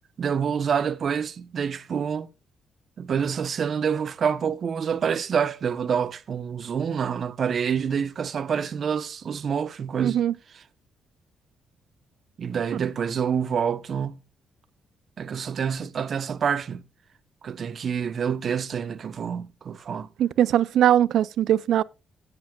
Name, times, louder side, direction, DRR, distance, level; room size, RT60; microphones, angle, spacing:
voice 1, 0.2-2.3 3.0-10.2 10.5-10.6 12.4-14.2 15.2-16.8 17.4-20.1, right 7 dB, 50° right, 0.9 m, -27 dB
voice 2, 10.0-10.3 20.2-21.8, right 11 dB, 75° right, 0.4 m, -20 dB
16.5 x 8.1 x 2.4 m
cardioid pair, 90°, 0 cm